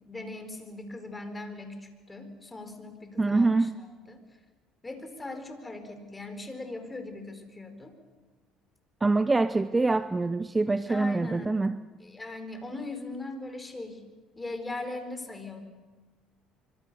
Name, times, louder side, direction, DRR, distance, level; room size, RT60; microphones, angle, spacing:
voice 1, 0.0-3.7 4.0-4.2 4.8-7.9 10.0-10.2 10.9-11.5 12.0-14.0 14.4-15.6, left 2 dB, 15° left, 8 dB, 4.6 m, -39 dB
voice 2, 3.2-3.7 9.0-11.8, right 3 dB, 15° right, 13 dB, 0.7 m, -25 dB
25.5 x 25.5 x 7.0 m, 1.3 s
supercardioid pair, 95°, 0 cm